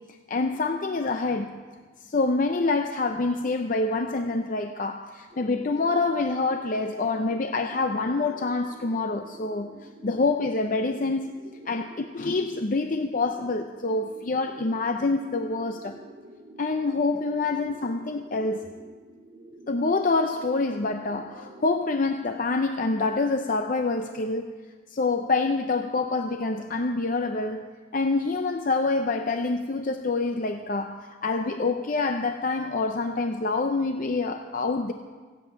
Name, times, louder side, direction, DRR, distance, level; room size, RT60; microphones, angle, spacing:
voice 1, 0.3-1.6 2.0-9.8 10.0-11.3 11.7-16.0 16.6-18.7 19.7-24.5 24.9-34.9, left 3 dB, 40° left, 6 dB, 0.5 m, -26 dB
sound 1, 5.3-21.7, right 1 dB, 40° right, 2.1 m, -48 dB
15.0 x 7.7 x 8.9 m, 1.5 s
head